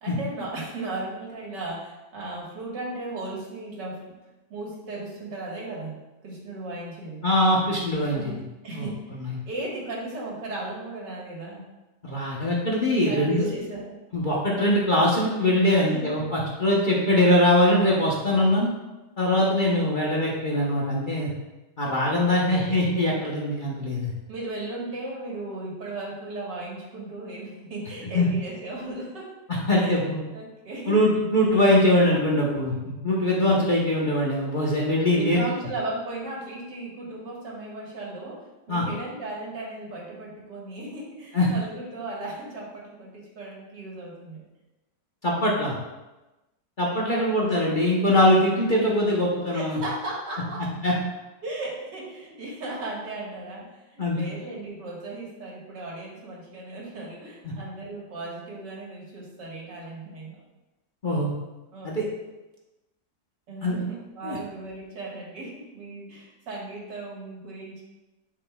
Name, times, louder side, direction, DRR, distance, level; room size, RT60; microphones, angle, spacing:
voice 1, 0.0-4.2 4.5-7.3 8.1-8.4 8.6-9.0 9.5-11.7 13.1-14.0 15.7-16.2 22.0-22.8 24.3-29.3 29.7-31.0 35.2-44.4 47.0-47.4 49.5-50.7 51.4-60.4 61.7-62.1 63.5-67.8, right 2 dB, 80° right, -3 dB, 2.2 m, -36 dB
voice 2, 7.2-8.4 8.7-8.9 12.0-13.5 14.1-18.7 19.2-21.3 21.8-24.1 28.1-28.3 29.7-30.2 30.9-35.4 38.7-38.9 41.3-41.5 45.2-45.7 46.8-49.8 50.8-50.9 54.0-54.3 57.4-57.5 61.0-61.3 61.8-62.0 63.6-63.8 64.2-64.4, left 1 dB, 35° left, -4 dB, 0.9 m, -22 dB
10.5 x 5.0 x 2.3 m, 1.1 s
omnidirectional pair, 1.9 m